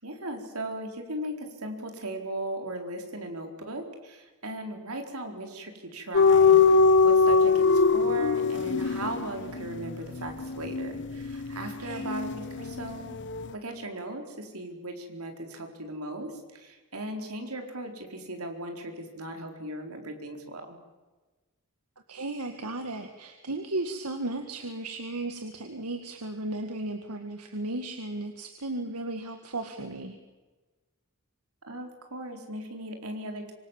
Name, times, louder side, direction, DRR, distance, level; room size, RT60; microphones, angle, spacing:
voice 1, 0.0-13.2 13.5-20.8 31.7-33.5, right 1 dB, 70° right, 4 dB, 4.3 m, -37 dB
sound 1, 6.1-12.9 13.2-13.4, left 4 dB, 55° left, 1.1 m, -22 dB
voice 2, 11.8-12.1 22.1-30.2, right 2 dB, 90° right, 5 dB, 2.0 m, -35 dB
25.5 x 25.0 x 7.5 m, 1.2 s
head